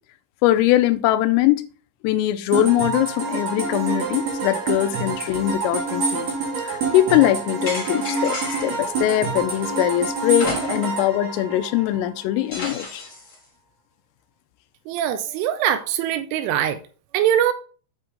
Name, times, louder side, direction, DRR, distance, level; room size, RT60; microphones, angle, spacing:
voice 1, 0.4-1.6 2.0-6.3 6.6-13.0, left 13 dB, 85° left, 3.2 m, -21 dB
sound 1, 2.5-12.2, right 4 dB, 45° right, 2.8 m, -27 dB
sound 2, 7.7-8.9 10.3-11.1 11.4-11.5 12.5-13.4, left 2 dB, 25° left, 3.7 m, -32 dB
voice 2, 14.9-16.8 17.1-17.5, right 10 dB, 80° right, 2.9 m, -22 dB
8.6 x 5.6 x 3.9 m
omnidirectional pair, 5.9 m